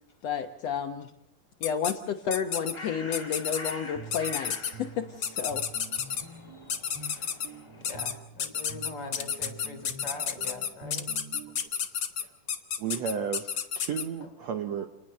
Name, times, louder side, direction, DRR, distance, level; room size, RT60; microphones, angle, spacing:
voice 1, 0.2-1.1 1.6-5.6, left 7 dB, 85° left, 5 dB, 1.4 m, -31 dB
sound 1, 1.6-1.9 2.3-2.7 3.1-3.7 4.1-4.7 5.2-6.2 6.7-7.5 7.8-8.1 8.4-14.0, left 7 dB, 60° left, 1.2 m, -31 dB
Bird, 2.2-8.3, left 2 dB, 10° left, 1.8 m, -46 dB
Guitar, 3.7-11.7, right 4 dB, 45° right, 2.9 m, -47 dB
voice 2, 7.1-7.5 7.8-11.1 14.2-14.3, left 3 dB, 35° left, 6 dB, 3.9 m, -42 dB
voice 3, 12.8-14.9, right 7 dB, 70° right, 8 dB, 1.6 m, -33 dB
28.0 x 20.0 x 6.7 m, 0.78 s
omnidirectional pair, 4.5 m